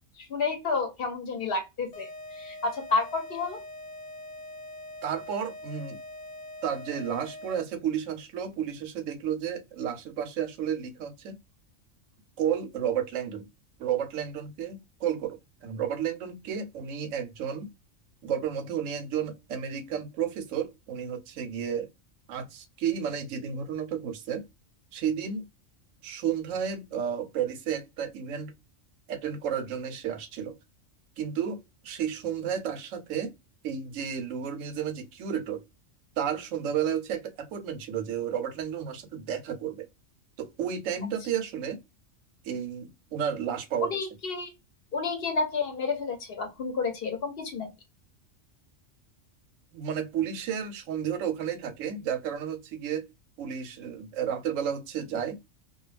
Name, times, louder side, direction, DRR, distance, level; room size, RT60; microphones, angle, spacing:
voice 1, 0.1-3.6 43.8-44.5 44.9-47.7, left 4 dB, 55° left, 0.8 m, -30 dB
sound 1, 1.9-7.9, left 1 dB, 80° left, 1.0 m, -43 dB
voice 2, 5.0-6.0 6.6-11.3 12.4-13.5 13.8-17.7 18.2-21.9 22.3-24.4 24.9-25.4 26.0-28.5 29.1-30.6 31.2-33.3 33.6-35.6 36.2-39.9 40.4-41.8 42.4-44.0 49.7-53.1 53.4-55.5, right 8 dB, 85° right, 0.9 m, -32 dB
2.2 x 2.1 x 3.1 m
omnidirectional pair, 1.3 m